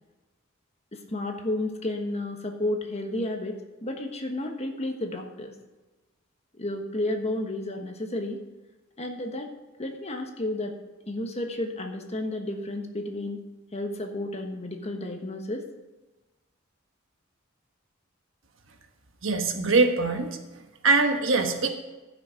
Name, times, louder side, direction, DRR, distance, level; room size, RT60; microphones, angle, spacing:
voice 1, 0.9-5.5 6.6-8.4 9.0-9.5 9.8-10.7 11.1-13.4 13.7-15.7, left 1 dB, 30° left, 4 dB, 1.3 m, -32 dB
voice 2, 19.2-20.4 20.8-21.7, right 3 dB, 70° right, 5 dB, 1.3 m, -22 dB
14.0 x 6.2 x 5.1 m, 1.1 s
head